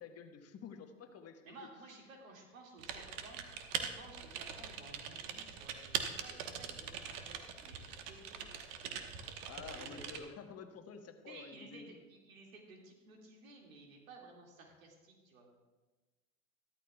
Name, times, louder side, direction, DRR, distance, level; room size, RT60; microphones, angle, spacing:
voice 1, 0.0-1.4 9.5-12.0, left 6 dB, 40° left, 6 dB, 1.3 m, -50 dB
voice 2, 1.4-3.4 3.7-9.1 9.7-10.0 11.3-15.5, right 2 dB, 90° right, 0 dB, 2.3 m, -56 dB
Typing, 2.8-10.2, right 8 dB, 70° right, 1.2 m, -42 dB
14.0 x 13.0 x 2.3 m, 1.2 s
hypercardioid pair, 85°, 39 cm